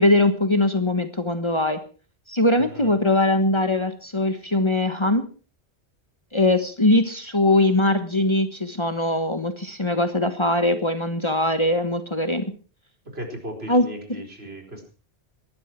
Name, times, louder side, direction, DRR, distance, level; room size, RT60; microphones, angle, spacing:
voice 1, 0.0-1.8 2.3-5.2 6.3-12.4 13.7-13.9, left 1 dB, 25° left, 8 dB, 1.4 m, -21 dB
voice 2, 2.6-2.9 13.0-14.9, equal, 65° right, 3 dB, 4.9 m, -36 dB
19.0 x 14.0 x 4.6 m, 0.37 s
omnidirectional pair, 1.1 m